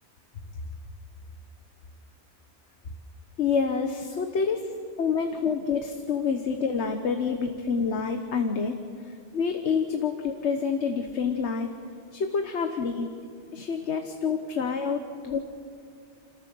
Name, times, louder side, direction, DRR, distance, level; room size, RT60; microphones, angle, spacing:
voice 1, 3.4-4.7 5.0-8.8 9.0-11.7 12.1-13.1 13.5-15.4, left 5 dB, 85° left, 6 dB, 1.4 m, -27 dB
29.5 x 14.0 x 6.9 m, 2.3 s
omnidirectional pair, 1.1 m